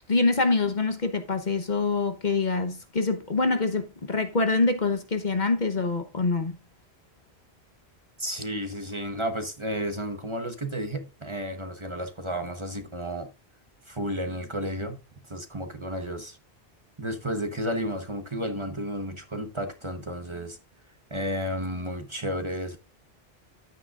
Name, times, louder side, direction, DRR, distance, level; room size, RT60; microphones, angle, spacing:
voice 1, 0.1-6.5, left 3 dB, 45° left, 1.1 m, -25 dB
voice 2, 8.2-13.3 13.8-15.0 15.3-16.4 17.0-20.6 21.1-22.8, equal, 30° right, 1.1 m, -32 dB
10.5 x 9.4 x 2.5 m
omnidirectional pair, 1.1 m